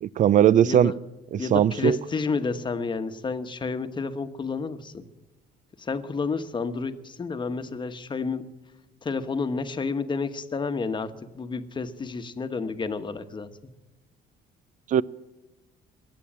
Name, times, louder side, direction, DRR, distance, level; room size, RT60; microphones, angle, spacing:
voice 1, 0.0-0.9 1.3-2.0 14.9-15.0, right 10 dB, 50° right, 0.5 m, -19 dB
voice 2, 0.6-1.0 1.4-5.1 5.8-8.5 9.0-13.5, left 4 dB, 25° left, 1.2 m, -30 dB
21.5 x 8.5 x 7.4 m
cardioid pair, 110°, 17 cm